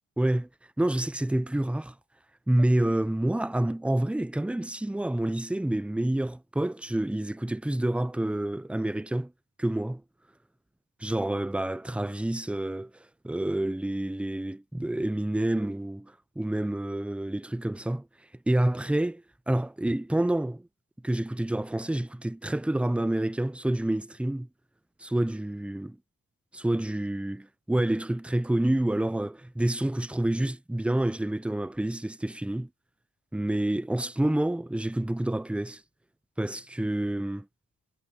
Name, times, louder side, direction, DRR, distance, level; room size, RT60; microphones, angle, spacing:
voice 1, 0.2-0.5 0.8-1.9 2.5-9.3 9.6-10.0 11.0-12.9 13.2-18.1 18.5-20.6 21.0-24.5 25.0-26.0 26.5-32.7 33.3-35.8 36.4-37.5, right 1 dB, 5° right, 0.6 m, -28 dB
cardioid pair, 85°, 38 cm